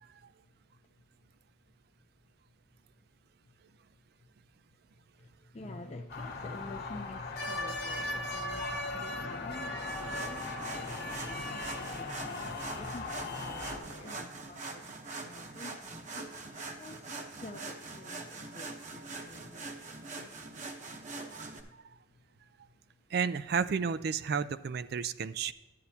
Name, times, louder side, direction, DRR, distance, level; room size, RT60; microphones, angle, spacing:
voice 1, 5.2-20.1, left 2 dB, 35° left, 0.5 m, -48 dB
sound 1, 6.1-13.8, left 2 dB, 55° left, 1.3 m, -38 dB
Boat Water vehicle, 9.1-14.2, left 2 dB, 75° left, 0.9 m, -49 dB
sound 2, 9.8-21.6, right 3 dB, 40° right, 0.9 m, -43 dB
voice 2, 23.1-25.5, right 6 dB, 55° right, 0.3 m, -32 dB
11.0 x 9.3 x 2.8 m
head